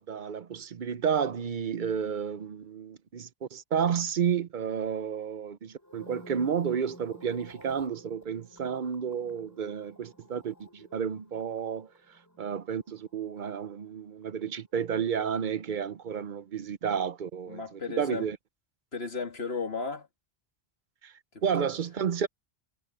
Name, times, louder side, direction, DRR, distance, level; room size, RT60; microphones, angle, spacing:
voice 1, 0.0-11.9 12.4-18.4 21.0-21.1 21.4-22.3, right 7 dB, 55° right, 0.8 m, -31 dB
sound 1, 5.7-14.1 14.4-14.8, equal, 15° left, 7.1 m, -53 dB
voice 2, 17.5-18.3 18.9-20.1 21.3-21.7, left 4 dB, 70° left, 2.4 m, -35 dB
omnidirectional pair, 1.1 m